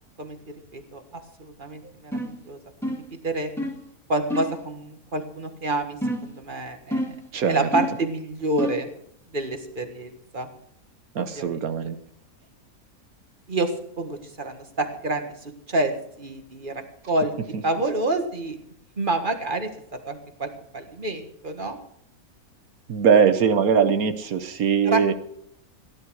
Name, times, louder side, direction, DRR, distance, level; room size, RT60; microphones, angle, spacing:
voice 1, 1.4-3.5 4.1-6.0 6.2-7.1 7.4-8.9 9.3-10.5 11.2-11.5 13.5-13.7 14.0-15.9 16.2-17.3 17.6-18.6 19.0-19.7 20.1-21.8 24.9-25.1, right 2 dB, 35° right, 6 dB, 1.8 m, -28 dB
sound 1, 2.1-2.4 2.8-3.1 3.6-3.8 4.3-4.6 6.0-6.4 6.9-7.3 7.7-8.1 8.6-8.9, left 1 dB, ahead, 2.0 m, -28 dB
voice 2, 7.3-7.7 11.1-12.0 22.9-25.1, right 6 dB, 75° right, 10 dB, 1.4 m, -21 dB
17.0 x 11.0 x 4.7 m, 0.71 s
omnidirectional pair, 1.6 m